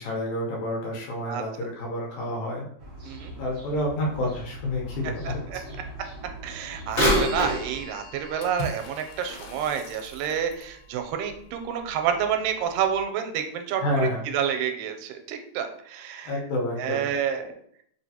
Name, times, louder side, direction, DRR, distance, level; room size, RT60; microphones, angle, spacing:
voice 1, 0.0-2.7 3.4-5.6 13.8-14.2 16.3-17.0, left 1 dB, 70° left, -3 dB, 2.1 m, -29 dB
sound 1, 2.8-7.8, right 1 dB, 60° right, 1.1 m, -41 dB
voice 2, 3.1-3.4 5.5-5.6 6.4-16.3 16.8-17.5, right 8 dB, 90° right, 6 dB, 2.2 m, -29 dB
Bird vocalization bird call bird song / Telephone, 6.9-10.7 11.3-11.4 12.2-12.3 12.9-13.0, equal, 30° left, 1.0 m, -29 dB
Water / Splash splatter, 8.4-10.8, equal, 85° left, 2.3 m, -39 dB
4.8 x 3.1 x 2.8 m, 0.65 s
omnidirectional pair, 3.8 m